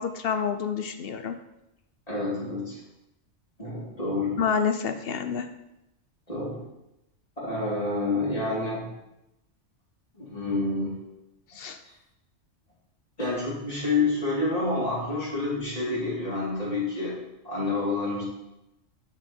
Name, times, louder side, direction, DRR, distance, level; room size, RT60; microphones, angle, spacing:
voice 1, 0.0-1.4 4.4-5.5 11.5-11.8, left 6 dB, 55° left, 8 dB, 0.9 m, -28 dB
voice 2, 2.1-2.8 3.6-4.4 6.3-6.6 7.4-8.9 10.1-10.9 11.8-11.9 13.2-17.1 17.4-18.2, left 3 dB, 30° left, -7 dB, 3.3 m, -28 dB
10.0 x 6.0 x 4.4 m, 0.90 s
omnidirectional pair, 1.3 m